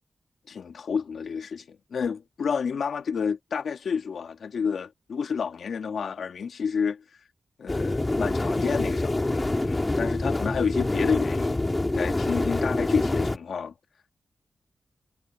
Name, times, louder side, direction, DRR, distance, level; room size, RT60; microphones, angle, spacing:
voice 1, 0.5-7.0 7.6-11.6 11.9-13.7, left 6 dB, 80° left, 2.1 m, -30 dB
sound 1, 7.7-13.4, left 2 dB, 20° left, 1.9 m, -26 dB
wide cardioid pair, 100°, 0 cm